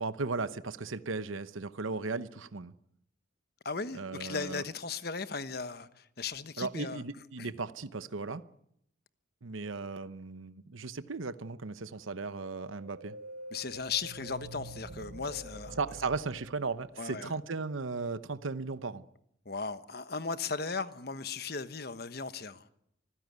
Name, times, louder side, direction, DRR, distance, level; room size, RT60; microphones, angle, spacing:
voice 1, 0.0-2.7 3.9-4.6 6.6-8.4 9.4-13.1 15.8-19.0, right 4 dB, 85° right, 0.9 m, -36 dB
voice 2, 3.6-7.0 7.4-7.5 13.5-15.8 17.0-17.3 19.4-22.7, left 4 dB, 50° left, 1.2 m, -37 dB
sound 1, 12.7-17.3, right 1 dB, 50° right, 1.0 m, -46 dB
25.5 x 16.0 x 9.5 m
head